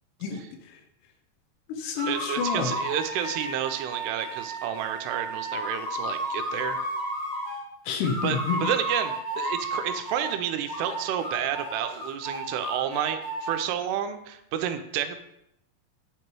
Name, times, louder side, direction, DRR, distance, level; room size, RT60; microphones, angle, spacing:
voice 1, 0.2-0.8 1.7-2.8 7.9-8.6, left 6 dB, 90° left, 4 dB, 2.9 m, -29 dB
sound 1, 2.0-7.6 8.0-10.4 10.7-13.6, right 1 dB, 60° left, 2.3 m, -33 dB
voice 2, 2.0-6.8 8.2-15.2, right 9 dB, 85° right, 8 dB, 2.6 m, -30 dB
8.8 x 3.0 x 4.6 m, 0.78 s
omnidirectional pair, 4.8 m